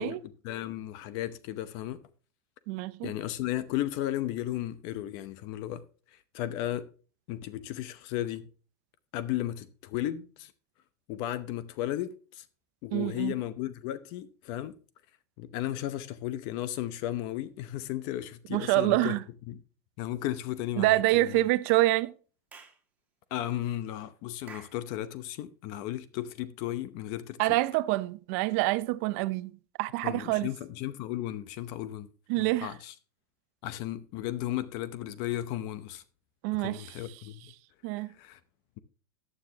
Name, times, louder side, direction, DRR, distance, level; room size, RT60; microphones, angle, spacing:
voice 1, 0.0-2.0 3.0-5.8 6.3-6.9 7.3-8.5 9.1-10.5 11.1-12.4 12.8-14.7 15.4-19.1 19.5-19.6 20.0-21.4 23.3-27.6 30.0-32.1 32.4-32.9 33.6-36.0 36.6-37.5 38.0-38.4, left 13 dB, 45° left, 0.7 m, -35 dB
voice 2, 2.7-3.1 12.9-13.3 18.5-19.2 20.8-22.1 27.4-30.5 32.3-32.7 36.4-37.0 37.8-38.1, right 18 dB, 50° right, 0.6 m, -26 dB
Clapping / Chirp tweet, 22.5-22.8 24.5-24.8, right 5 dB, 15° right, 1.8 m, -49 dB
14.0 x 9.6 x 2.8 m
supercardioid pair, 170°, 10 cm